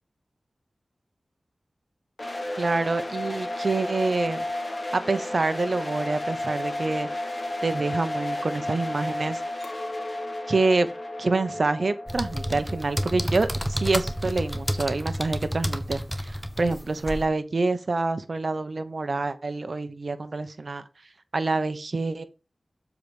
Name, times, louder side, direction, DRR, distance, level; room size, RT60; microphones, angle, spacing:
sound 1, 2.2-15.0, left 1 dB, 40° left, 1.7 m, -33 dB
voice 1, 2.6-4.4 4.9-7.1 7.6-9.4 10.5-10.9 11.2-20.8 21.3-22.2, right 3 dB, 65° right, 11 dB, 0.9 m, -26 dB
Chink clink, 9.6-15.0, left 1 dB, 80° left, 1.6 m, -43 dB
sound 2, 12.1-17.3, equal, ahead, 1.2 m, -30 dB
7.3 x 4.7 x 5.1 m, 0.30 s
cardioid pair, 45°, 0 cm